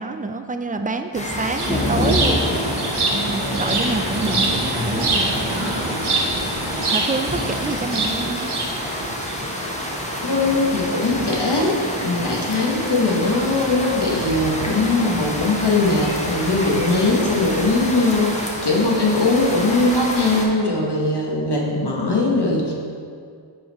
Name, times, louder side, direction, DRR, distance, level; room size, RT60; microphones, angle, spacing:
voice 1, 0.0-2.4 3.1-5.7 6.9-8.5, right 3 dB, 20° right, 7 dB, 0.3 m, -27 dB
sound 1, 1.1-20.4, left 1 dB, 15° left, 0.9 m, -27 dB
sound 2, 1.6-9.3, right 3 dB, 85° right, 1.0 m, -25 dB
voice 2, 10.2-22.7, left 2 dB, 55° left, -3 dB, 1.2 m, -20 dB
5.5 x 5.5 x 4.2 m, 2.2 s
wide cardioid pair, 45°, 49 cm